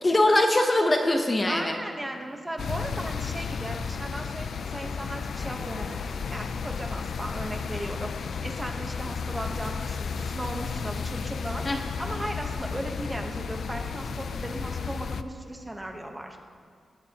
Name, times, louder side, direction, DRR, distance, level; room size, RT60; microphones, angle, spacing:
voice 1, 0.0-1.8 11.6-11.8, left 1 dB, 20° left, 3 dB, 0.9 m, -22 dB
voice 2, 1.5-16.4, right 1 dB, 10° right, 2 dB, 1.1 m, -37 dB
sound 1, 2.6-15.2, left 5 dB, 60° left, 0.5 m, -33 dB
20.5 x 17.0 x 3.0 m, 2.1 s
wide cardioid pair, 175°, 0 cm